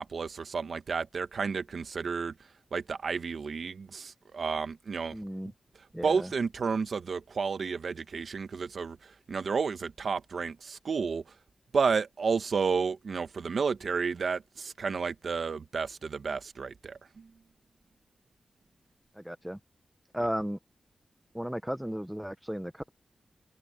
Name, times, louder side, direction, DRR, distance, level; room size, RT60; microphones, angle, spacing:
voice 1, 0.0-2.3 2.7-5.2 6.0-11.2 11.7-17.3, right 5 dB, 70° right, 1.3 m, -31 dB
voice 2, 5.1-5.5 5.9-6.3 19.2-19.6 20.1-20.6 21.3-22.9, equal, 5° right, 0.9 m, -34 dB
wide cardioid pair, 85°, 0 cm